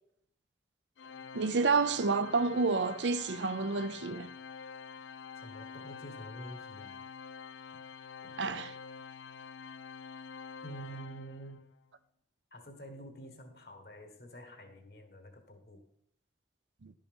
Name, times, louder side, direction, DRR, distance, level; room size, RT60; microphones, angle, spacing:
Organ, 1.0-11.7, left 6 dB, 90° left, 0.5 m, -47 dB
voice 1, 1.3-4.3 8.4-8.7 16.8-16.9, right 4 dB, 90° right, 0.6 m, -29 dB
voice 2, 5.3-7.0 10.6-11.6 12.5-15.8, right 1 dB, 60° left, 1.6 m, -48 dB
11.5 x 5.6 x 5.3 m
head